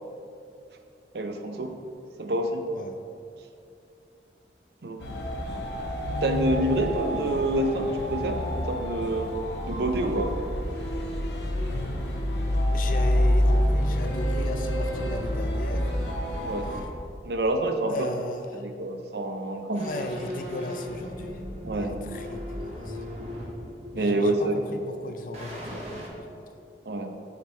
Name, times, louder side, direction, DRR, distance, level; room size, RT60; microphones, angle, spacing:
voice 1, 1.1-1.7 2.2-2.6 4.8-5.0 6.2-10.3 16.4-16.7 17.2-18.1 18.5-20.1 21.6-22.0 23.9-25.0 26.9-27.1, right 1 dB, 65° right, 5 dB, 0.6 m, -27 dB
sound 1, 5.0-16.9, equal, 75° left, 0.9 m, -27 dB
voice 2, 12.7-15.9 17.9-18.7 19.7-21.4 21.8-23.0 24.0-26.4, left 2 dB, 50° left, 6 dB, 0.4 m, -36 dB
sound 2, 19.7-25.0 25.3-26.1, equal, 35° right, 1.1 m, -38 dB
6.8 x 6.2 x 3.2 m, 2.5 s
head